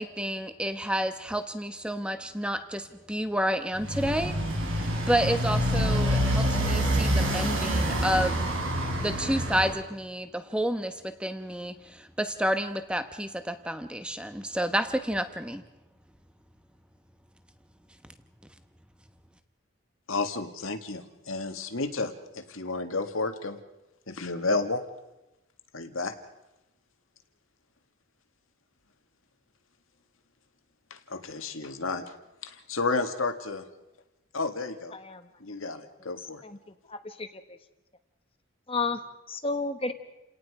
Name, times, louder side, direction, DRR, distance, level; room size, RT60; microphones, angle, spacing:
voice 1, 0.0-8.4 9.0-15.6, equal, 5° right, 9 dB, 1.1 m, -30 dB
Motorcycle, 3.7-9.8, equal, 75° right, 5.1 m, -27 dB
voice 2, 20.1-23.6 24.1-24.8 25.7-26.1 30.9-32.0 32.4-33.7 34.3-34.9 35.4-36.4, left 3 dB, 80° left, 7 dB, 1.9 m, -31 dB
voice 3, 34.9-35.3 36.4-36.6 36.9-37.3 38.7-39.0 39.3-39.9, left 3 dB, 25° left, 9 dB, 1.2 m, -31 dB
30.0 x 18.5 x 4.9 m, 0.96 s
head